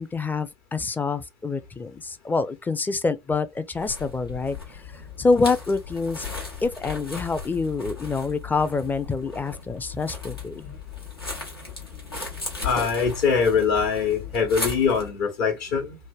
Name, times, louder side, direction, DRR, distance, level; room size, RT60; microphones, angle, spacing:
voice 1, 0.0-6.3 6.6-10.7, left 4 dB, 15° left, 0.4 m, -26 dB
sound 1, 3.7-15.1, left 4 dB, 90° left, 1.0 m, -36 dB
voice 2, 12.6-16.0, left 6 dB, 60° left, 1.0 m, -23 dB
3.2 x 2.1 x 2.3 m
figure-of-eight pair, 65°, 12 cm